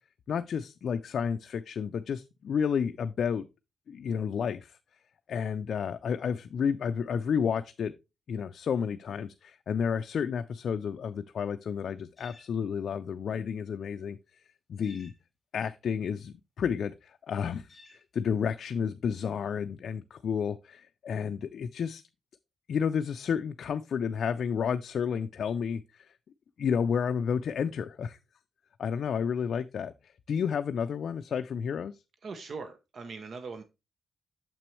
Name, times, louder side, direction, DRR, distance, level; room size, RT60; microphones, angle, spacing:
voice 1, 0.3-3.5 3.9-4.8 5.3-7.9 8.3-14.2 14.7-15.1 15.5-17.7 18.1-22.0 22.7-26.1 26.6-28.2 28.8-29.9 30.3-32.0, left 7 dB, 70° left, 0.3 m, -31 dB
sound 1, 12.2-12.5 14.8-15.2 17.7-18.0, left 3 dB, 25° left, 2.8 m, -54 dB
voice 2, 32.2-33.6, right 4 dB, 55° right, 0.7 m, -40 dB
6.9 x 6.0 x 3.1 m
wide cardioid pair, 120°, 0 cm